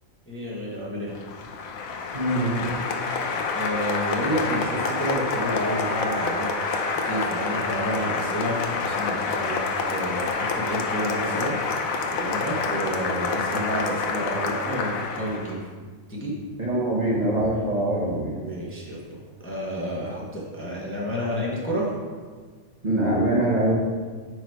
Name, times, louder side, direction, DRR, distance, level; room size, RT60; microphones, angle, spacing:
voice 1, 0.3-1.2 3.5-9.6 9.9-11.6 12.1-15.7 16.1-16.3 18.4-21.9, equal, 10° left, -5 dB, 0.9 m, -30 dB
Applause, 1.1-15.6, left 4 dB, 75° left, 1.1 m, -28 dB
voice 2, 2.1-2.7 16.6-18.4 22.8-23.7, right 1 dB, 30° right, -5 dB, 1.1 m, -23 dB
sound 1, 4.6-8.6, equal, 15° right, 0.7 m, -36 dB
5.9 x 4.8 x 4.6 m, 1.5 s
omnidirectional pair, 1.4 m